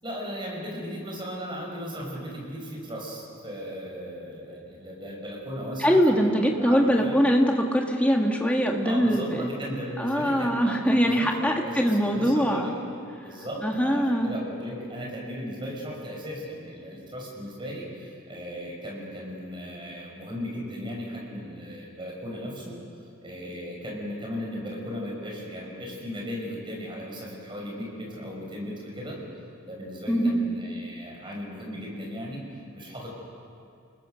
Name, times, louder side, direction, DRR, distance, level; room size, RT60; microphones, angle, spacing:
voice 1, 0.0-7.2 8.8-12.7 13.2-22.8 23.2-29.2 29.7-32.4 32.7-33.1, equal, 25° right, -2 dB, 5.9 m, -36 dB
voice 2, 5.8-9.5 10.0-12.7 13.6-14.3 30.1-30.4, equal, 5° left, 1 dB, 1.9 m, -22 dB
30.0 x 21.0 x 6.5 m, 2.4 s
head